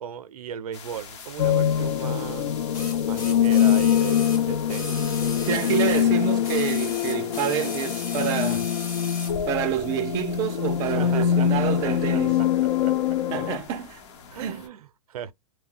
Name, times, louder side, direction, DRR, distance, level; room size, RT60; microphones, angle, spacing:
voice 1, 0.0-2.6 3.0-5.0 10.8-13.2 14.3-15.3, right 8 dB, 85° right, 0.5 m, -37 dB
sound 1, 0.7-14.7, left 6 dB, 50° left, 0.9 m, -44 dB
sound 2, 1.1-1.3 2.7-6.1 6.4-9.4 10.3-10.4, left 4 dB, 20° left, 0.8 m, -37 dB
sound 3, 1.4-13.6, left 9 dB, 75° left, 0.5 m, -24 dB
voice 2, 5.5-8.7 9.5-12.4 13.3-14.0 14.4-14.6, right 9 dB, 20° right, 0.3 m, -28 dB
2.3 x 2.1 x 3.6 m
hypercardioid pair, 155°, 18 cm